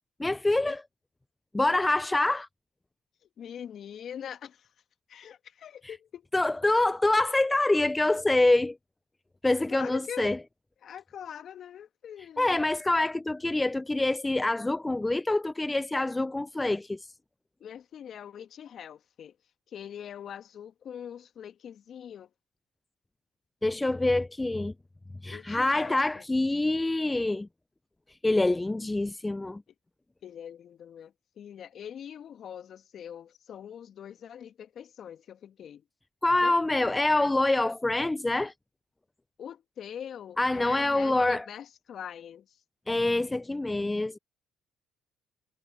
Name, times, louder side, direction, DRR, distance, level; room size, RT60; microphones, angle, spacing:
voice 1, 0.2-0.8 1.5-2.5 6.3-8.8 9.4-10.4 12.4-17.1 23.6-24.7 25.2-27.5 28.2-29.6 36.2-38.5 40.4-41.4 42.9-44.2, left 2 dB, 15° left, 0.5 m, -26 dB
voice 2, 3.4-4.7 5.1-6.3 9.7-10.3 10.8-12.7 17.6-19.4 19.7-22.3 25.3-26.2 30.2-35.8 36.4-37.0 39.4-42.6, left 9 dB, 55° left, 1.9 m, -43 dB
hypercardioid pair, 65°, 0 cm